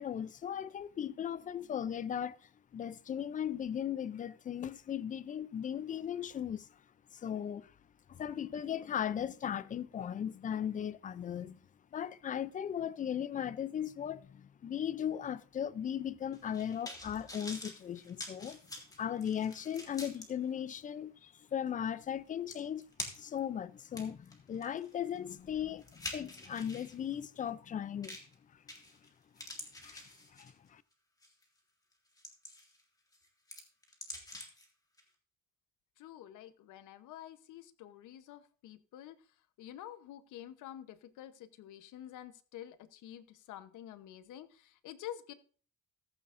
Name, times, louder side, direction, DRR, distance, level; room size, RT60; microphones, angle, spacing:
voice 1, 0.0-6.8 7.1-7.7 8.1-11.6 11.9-18.6 19.0-22.8 23.2-28.2 29.8-30.0 30.3-30.8, left 9 dB, 25° left, 0.4 m, -37 dB
sound 1, 16.3-20.3 20.8-20.9 22.1-22.2 22.5-23.4 23.8-26.9 28.0-28.3 28.7-29.1 29.4-30.7 31.2-31.4 31.9-32.8 33.1-34.7 35.0-35.1, left 1 dB, 10° left, 1.8 m, -46 dB
voice 2, 36.0-39.2 39.6-45.3, left 11 dB, 80° left, 0.9 m, -49 dB
14.5 x 11.0 x 2.5 m
cardioid pair, 160°, 30 cm